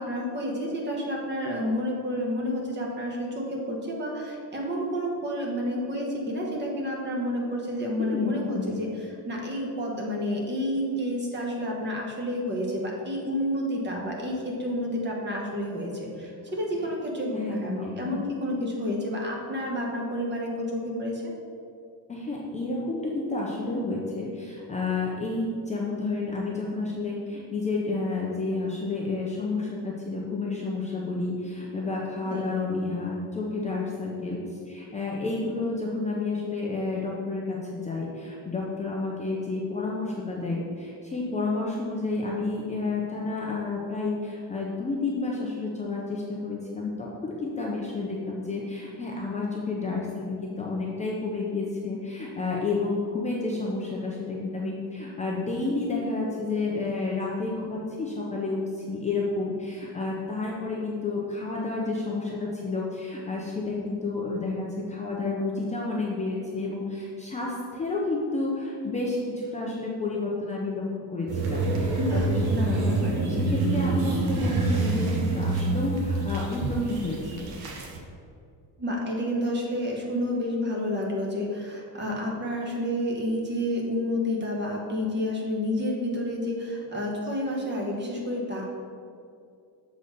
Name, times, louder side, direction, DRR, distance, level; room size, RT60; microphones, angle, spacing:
voice 1, 0.0-21.3 32.3-32.5 72.0-73.2 78.8-88.7, left 1 dB, 25° right, -2 dB, 1.2 m, -30 dB
voice 2, 8.0-8.7 17.4-18.2 22.1-72.4 72.7-73.0 73.3-77.6, left 3 dB, 15° left, -4 dB, 0.6 m, -30 dB
sound 1, 71.3-78.0, right 2 dB, 60° right, 1.3 m, -26 dB
6.9 x 4.0 x 6.4 m, 2.4 s
cardioid pair, 175°, 42 cm